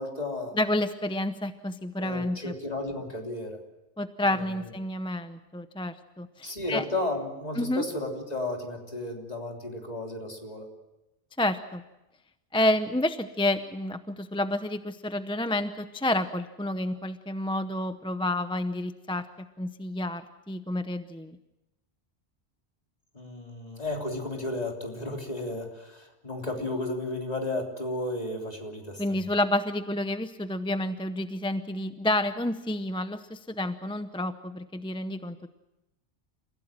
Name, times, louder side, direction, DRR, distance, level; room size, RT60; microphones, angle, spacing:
voice 1, 0.0-0.6 2.0-3.6 4.2-4.6 6.4-10.7 23.1-29.2, left 2 dB, 35° left, 1 dB, 3.5 m, -33 dB
voice 2, 0.5-2.5 4.0-6.8 7.6-7.8 11.4-11.8 12.5-19.2 19.6-20.2 20.5-21.4 29.0-35.5, left 1 dB, 5° left, 10 dB, 0.6 m, -29 dB
29.5 x 16.0 x 7.5 m, 0.99 s
omnidirectional pair, 1.1 m